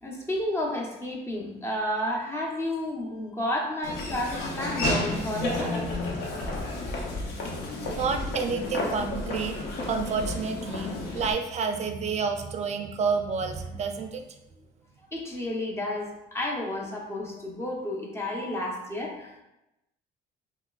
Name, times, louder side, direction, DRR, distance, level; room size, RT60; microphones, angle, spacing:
voice 1, 0.0-5.8 15.1-19.4, left 1 dB, 15° left, -2 dB, 0.8 m, -31 dB
Laughter / Walk footsteps, 3.8-11.3, left 1 dB, 75° left, 0.8 m, -31 dB
voice 2, 8.0-9.6 9.9-14.2, right 5 dB, 40° right, 6 dB, 0.4 m, -29 dB
5.7 x 2.1 x 2.4 m, 0.93 s
cardioid pair, 110°, 17 cm